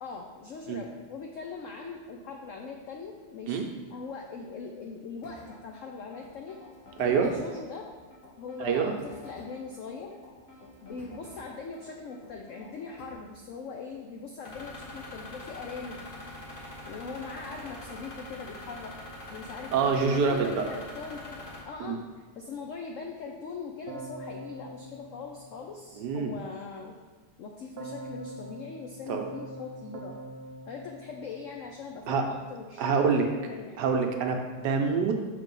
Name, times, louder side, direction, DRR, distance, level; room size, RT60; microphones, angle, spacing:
voice 1, 0.0-6.6 7.0-7.9 8.4-10.1 10.8-16.0 16.9-19.0 19.3-21.4 21.6-27.0 27.4-30.2 30.7-33.9, left 5 dB, 90° left, 2 dB, 0.6 m, -41 dB
sound 1, 5.2-13.3, left 2 dB, 50° left, 1.8 m, -50 dB
voice 2, 7.0-7.3 8.6-8.9 19.7-20.6 21.8-22.0 26.0-26.3 29.1-29.2 32.1-32.3 32.8-33.3 33.8-35.2, right 5 dB, 75° right, 3 dB, 1.2 m, -26 dB
sound 2, 14.4-21.6, left 1 dB, 35° left, 1.2 m, -43 dB
Keyboard (musical), 23.9-26.2 27.8-32.0, right 2 dB, 55° right, 0.6 m, -44 dB
6.7 x 3.4 x 5.3 m, 1.3 s
omnidirectional pair, 1.9 m